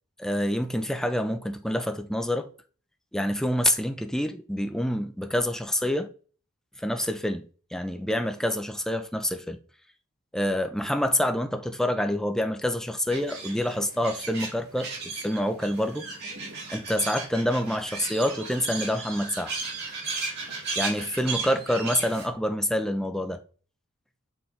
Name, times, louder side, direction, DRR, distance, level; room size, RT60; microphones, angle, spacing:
voice 1, 0.2-2.5 3.1-6.1 6.8-7.5 7.7-9.6 10.3-16.1 16.7-19.5 20.8-23.4, equal, ahead, 0.6 m, -27 dB
sound 1, 13.1-22.3, right 4 dB, 50° right, 2.9 m, -35 dB
7.0 x 3.5 x 4.3 m
head